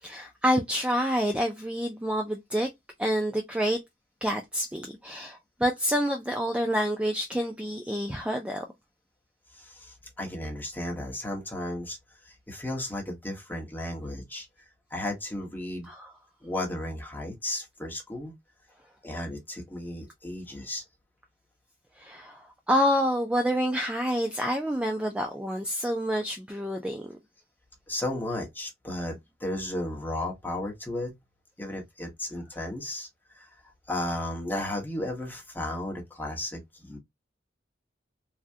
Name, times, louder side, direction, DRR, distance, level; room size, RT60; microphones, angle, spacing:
voice 1, 0.0-2.7 3.0-3.8 4.2-8.6 15.9-16.1 22.0-27.2, equal, 5° right, 0.3 m, -28 dB
voice 2, 9.5-12.0 12.2-15.9 16.4-18.3 19.0-20.8 27.9-31.1 31.6-33.6 33.9-37.0, left 1 dB, 10° left, 1.0 m, -34 dB
3.4 x 2.2 x 2.6 m
head